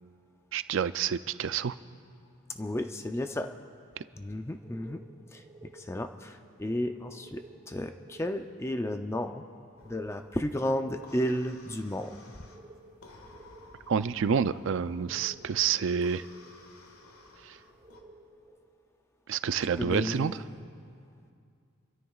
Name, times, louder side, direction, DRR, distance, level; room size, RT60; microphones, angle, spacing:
voice 1, 0.5-1.8 13.9-16.2 17.4-17.6 19.3-20.4, right 7 dB, 55° right, 14 dB, 0.4 m, -28 dB
voice 2, 2.5-3.5 4.1-5.0 5.3-5.4 5.7-9.4 9.8-12.2 19.8-20.4, left 1 dB, 10° left, 6 dB, 0.4 m, -33 dB
sound 1, 4.6-18.5, right 2 dB, 25° right, 1.9 m, -55 dB
sound 2, 9.8-18.0, left 2 dB, 80° left, 1.7 m, -55 dB
29.0 x 13.5 x 2.4 m, 2.4 s
head